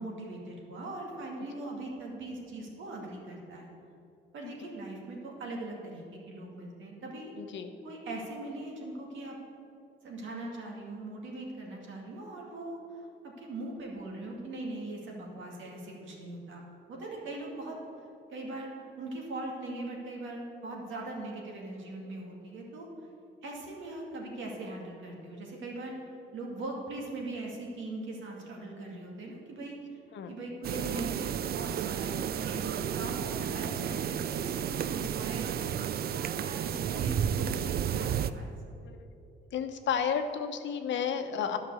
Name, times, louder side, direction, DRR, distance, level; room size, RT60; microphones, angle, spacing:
voice 1, 0.0-3.7 4.3-7.3 7.8-9.4 10.0-16.6 16.9-17.8 18.3-22.9 23.4-25.9 26.3-30.0 30.3-32.2 32.4-35.8 36.4-38.5, right 2 dB, 75° right, -1 dB, 2.3 m, -40 dB
voice 2, 7.4-7.7 30.1-30.3 38.8-39.1 39.5-41.6, left 7 dB, 70° left, 7 dB, 0.9 m, -32 dB
sound 1, 30.6-38.3, right 9 dB, 50° right, 0.4 m, -32 dB
11.0 x 5.8 x 7.0 m, 2.7 s
cardioid pair, 90°, 20 cm